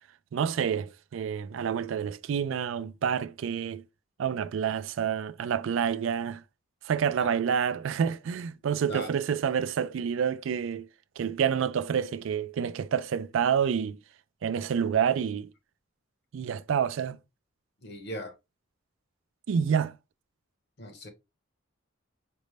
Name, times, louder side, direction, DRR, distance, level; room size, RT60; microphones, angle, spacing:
voice 1, 0.3-3.8 4.2-6.4 6.8-10.9 11.2-14.0 14.4-15.5 16.3-17.2 19.5-19.9, right 7 dB, 70° right, 0.3 m, -28 dB
voice 2, 17.8-18.3 20.8-21.1, equal, 55° left, 1.0 m, -38 dB
5.1 x 2.1 x 3.2 m
head